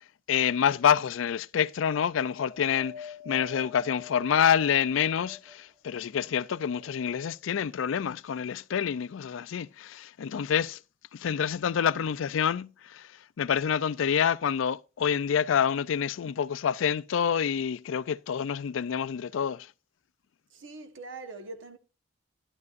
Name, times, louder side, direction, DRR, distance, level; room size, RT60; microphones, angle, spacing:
voice 1, 0.3-10.8 11.1-13.1 13.4-19.7, left 8 dB, 80° left, 0.4 m, -27 dB
Wind, 2.3-5.8 6.4-7.4 8.2-8.3, left 6 dB, 55° right, 3.9 m, -46 dB
voice 2, 20.5-21.8, right 3 dB, 80° right, 1.3 m, -42 dB
12.0 x 10.5 x 2.5 m
head